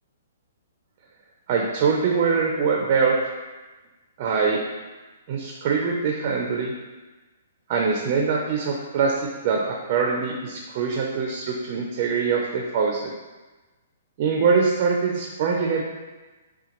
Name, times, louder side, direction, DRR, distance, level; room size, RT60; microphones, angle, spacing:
voice 1, 1.5-3.2 4.2-4.6 5.3-6.7 7.7-13.1 14.2-15.8, right 5 dB, 35° right, 0 dB, 0.4 m, -23 dB
5.7 x 2.2 x 2.9 m, 1.2 s
hypercardioid pair, 165°, 0 cm